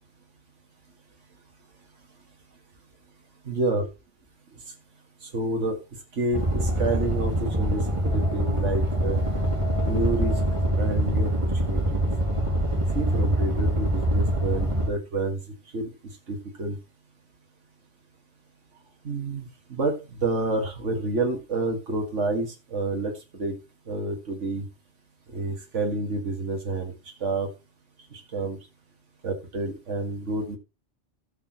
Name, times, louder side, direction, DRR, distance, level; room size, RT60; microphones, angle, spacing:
voice 1, 3.5-3.9 5.3-5.8 6.2-9.2 9.8-10.3 10.8-11.3 11.6-12.0 12.9-15.4 15.7-15.9 16.3-16.8 19.0-23.1 23.4-23.6 23.9-24.7 25.3-26.9 27.2-27.5 28.1-28.6 29.2-30.6, right 2 dB, 80° right, 2 dB, 2.3 m, -28 dB
sound 1, 6.3-14.9, right 1 dB, 25° right, 2.6 m, -24 dB
17.5 x 6.4 x 3.0 m, 0.28 s
omnidirectional pair, 1.2 m